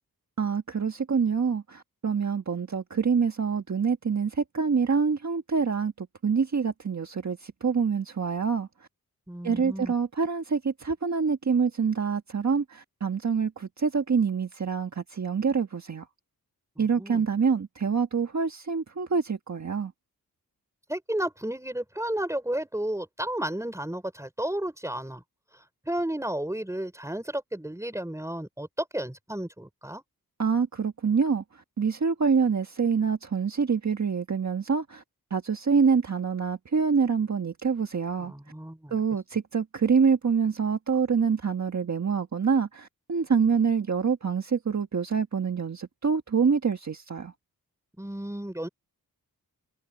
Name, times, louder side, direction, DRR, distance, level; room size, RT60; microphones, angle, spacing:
voice 1, 0.4-8.7 9.4-16.0 16.8-19.9 30.4-31.4 31.8-35.0 35.3-38.3 38.9-47.3, right 5 dB, 45° right, 1.5 m, -26 dB
voice 2, 9.3-9.9 16.8-17.2 20.9-25.2 25.9-30.0 38.2-39.0 48.0-48.7, right 1 dB, 10° right, 5.6 m, -32 dB
wide cardioid pair, 125°, 37 cm